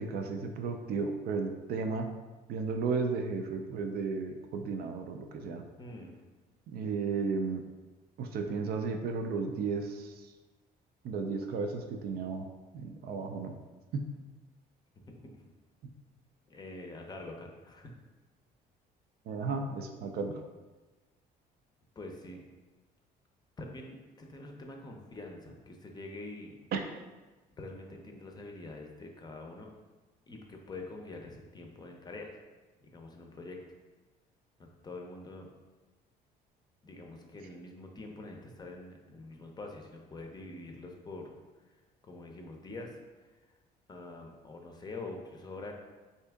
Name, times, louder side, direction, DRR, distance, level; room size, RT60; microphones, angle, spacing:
voice 1, 0.0-2.1 2.5-5.6 6.7-7.6 8.2-10.1 11.0-12.5 12.7-13.5 13.9-14.0 19.3-20.4 26.7-26.8, right 4 dB, 65° right, 4 dB, 0.5 m, -34 dB
voice 2, 5.8-6.2 15.0-15.1 15.3-15.4 16.5-17.9 22.0-22.5 23.6-26.6 27.6-29.7 30.3-32.3 32.8-33.6 34.6-35.5 36.8-41.3 41.7-41.8 42.0-43.3 43.9-45.7, left 2 dB, 25° left, 2 dB, 0.6 m, -45 dB
3.5 x 2.7 x 3.4 m, 1.2 s
cardioid pair, 110°, 17 cm